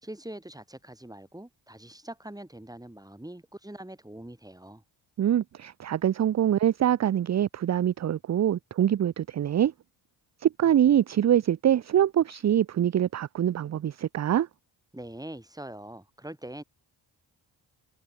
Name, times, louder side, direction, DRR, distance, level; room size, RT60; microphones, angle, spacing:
voice 1, 0.0-4.8 14.9-16.6, right 1 dB, 10° right, 4.3 m, -43 dB
voice 2, 5.2-9.7 10.4-14.5, right 10 dB, 35° right, 0.5 m, -24 dB
cardioid pair, 70°, 48 cm